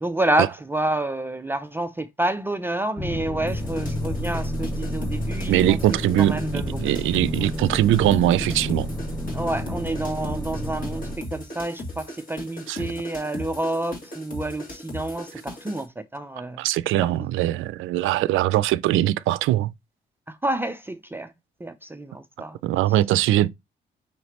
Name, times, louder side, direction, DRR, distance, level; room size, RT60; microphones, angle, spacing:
voice 1, 0.0-6.8 9.3-16.6 20.3-21.3 21.6-22.6, right 1 dB, 10° right, 0.5 m, -29 dB
sound 1, 3.0-11.2, equal, 10° left, 0.9 m, -30 dB
sound 2, 3.5-15.9, left 1 dB, 45° left, 2.5 m, -38 dB
voice 2, 5.5-6.4 6.8-8.9 12.7-12.9 16.6-19.7 22.6-23.5, right 14 dB, 85° right, 0.4 m, -21 dB
5.7 x 3.1 x 2.9 m
cardioid pair, 90°, 20 cm